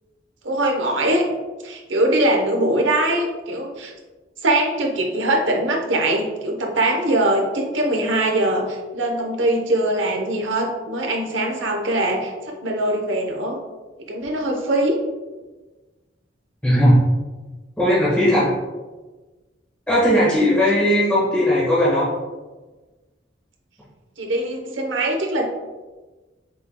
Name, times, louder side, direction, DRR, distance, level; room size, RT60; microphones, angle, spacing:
voice 1, 0.4-1.2 1.6-3.9 4.4-13.6 14.1-15.0 24.2-25.5, right 1 dB, 85° right, 1 dB, 0.8 m, -22 dB
voice 2, 16.6-17.0 17.8-18.5 19.9-22.1, equal, 5° left, -10 dB, 1.2 m, -17 dB
5.8 x 3.6 x 2.2 m, 1.2 s
head